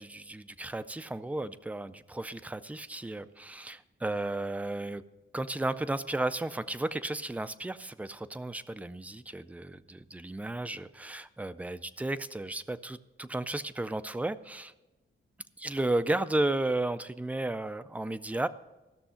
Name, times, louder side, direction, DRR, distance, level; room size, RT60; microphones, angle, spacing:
voice 1, 0.0-5.0 5.3-14.7 15.6-18.5, right 2 dB, 5° right, 11 dB, 0.3 m, -33 dB
15.5 x 6.4 x 5.7 m, 1.1 s
wide cardioid pair, 145°, 21 cm